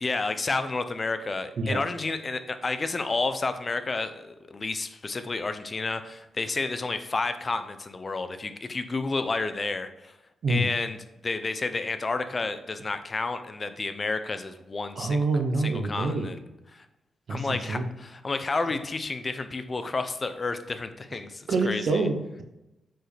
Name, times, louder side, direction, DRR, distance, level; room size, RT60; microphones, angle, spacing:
voice 1, 0.0-10.1 10.5-11.0 11.2-15.2 15.6-16.4 16.7-16.8 17.3-22.1, left 3 dB, 35° left, 10 dB, 0.6 m, -30 dB
voice 2, 15.0-16.3 17.3-17.8 21.5-22.4, right 3 dB, 65° right, 5 dB, 0.9 m, -26 dB
7.6 x 4.6 x 3.4 m, 0.93 s
cardioid pair, 75°, 0 cm